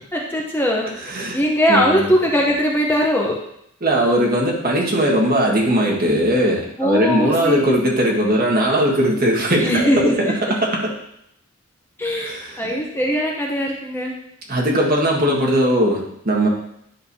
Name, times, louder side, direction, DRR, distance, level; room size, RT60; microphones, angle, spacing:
voice 1, 0.1-0.9 1.3-3.4 6.8-7.7 9.6-10.3 12.0-14.2 15.2-15.4, equal, 10° left, -1 dB, 0.8 m, -20 dB
voice 2, 1.7-2.1 3.8-10.2 10.5-10.9 12.1-12.6 14.5-16.5, equal, 45° right, -2 dB, 1.7 m, -19 dB
10.0 x 6.6 x 2.8 m, 0.74 s
head